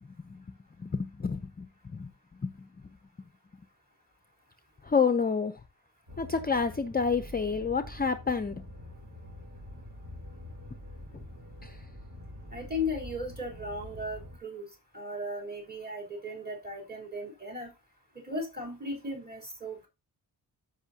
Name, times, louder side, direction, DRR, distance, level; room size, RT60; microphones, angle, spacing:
voice 1, 0.8-2.7 4.8-5.5 6.2-8.6 11.6-11.8, left 5 dB, 25° left, 10 dB, 0.6 m, -29 dB
sound 1, 6.1-14.4, left 1 dB, 40° right, 1.7 m, -46 dB
voice 2, 12.5-14.7 14.9-17.7 18.2-19.9, left 1 dB, 25° right, 0 dB, 3.6 m, -36 dB
13.5 x 5.6 x 2.8 m, 0.25 s
wide cardioid pair, 120°, 40 cm